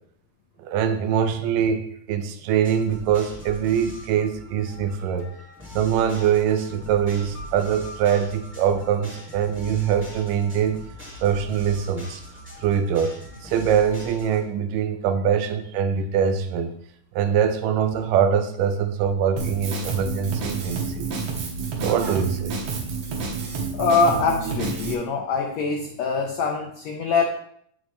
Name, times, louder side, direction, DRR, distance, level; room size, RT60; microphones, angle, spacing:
voice 1, 0.6-5.3 5.7-10.8 11.2-12.2 12.6-13.2 13.4-16.7 17.2-21.1 21.8-22.5, right 8 dB, 80° right, 8 dB, 2.3 m, -23 dB
sound 1, 2.6-14.4, left 1 dB, 5° right, 1.1 m, -42 dB
Drum kit, 19.4-24.9, right 4 dB, 60° right, 1.9 m, -29 dB
voice 2, 23.7-27.3, left 4 dB, 75° left, 1 dB, 1.6 m, -23 dB
8.3 x 6.3 x 3.1 m, 0.67 s
omnidirectional pair, 3.9 m